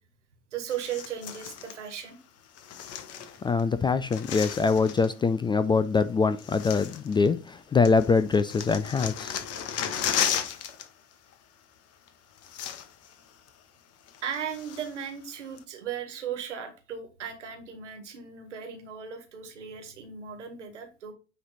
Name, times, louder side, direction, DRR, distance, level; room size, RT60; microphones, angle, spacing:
voice 1, 0.5-2.2 14.2-21.1, right 8 dB, 75° right, 1.6 m, -37 dB
sound 1, 0.7-1.8 2.6-3.6 3.9-5.1 6.0-6.1 6.4-7.6 7.9-10.9 11.1-11.3 12.1-12.2 12.4-13.1 13.5-13.6 14.1-15.1 15.6-15.7, left 9 dB, 45° left, 1.1 m, -34 dB
voice 2, 3.4-9.3, left 4 dB, 15° left, 0.3 m, -24 dB
9.3 x 3.3 x 4.0 m
figure-of-eight pair, 70°, 36 cm